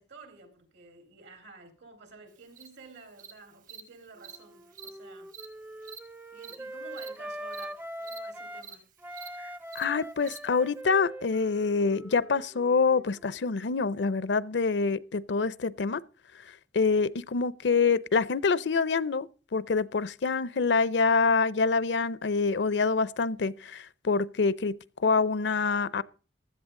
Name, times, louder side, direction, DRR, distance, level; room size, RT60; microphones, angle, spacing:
voice 1, 0.0-5.3 6.3-8.8, right 3 dB, 80° right, 3.9 m, -51 dB
Cricket, 2.6-2.7 3.2-3.3 3.7-3.8 4.2-4.4 4.7-4.9 5.3-5.5 5.8-6.0 6.4-6.5 6.9-7.1 7.5-7.6 8.0-8.2 8.6-8.7 9.1-9.3 9.7-9.8 10.2-10.4, right 8 dB, 50° right, 1.0 m, -45 dB
Wind instrument woodwind instrument, 4.2-8.7 9.0-13.5, right 1 dB, 10° right, 0.5 m, -42 dB
voice 2, 9.7-16.0 16.7-26.0, left 4 dB, 75° left, 0.6 m, -26 dB
15.5 x 11.5 x 3.7 m
head